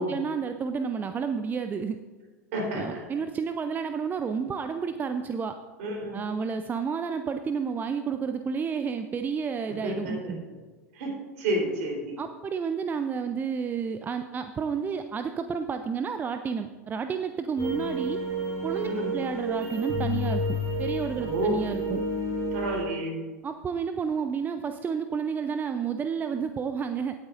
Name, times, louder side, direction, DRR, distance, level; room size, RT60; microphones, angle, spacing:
voice 1, 0.0-2.0 2.7-5.6 6.1-10.4 12.2-18.2 18.6-22.0 23.4-27.1, right 6 dB, 20° right, 8 dB, 0.5 m, -31 dB
voice 2, 2.5-3.0 5.8-6.2 9.7-10.3 10.9-12.2 18.8-19.1 21.2-21.7 22.5-23.2, right 1 dB, 55° right, 0 dB, 3.7 m, -30 dB
sound 1, 17.6-22.8, equal, 35° right, 3.1 m, -30 dB
17.0 x 8.7 x 2.5 m, 1.3 s
figure-of-eight pair, 85°, 9 cm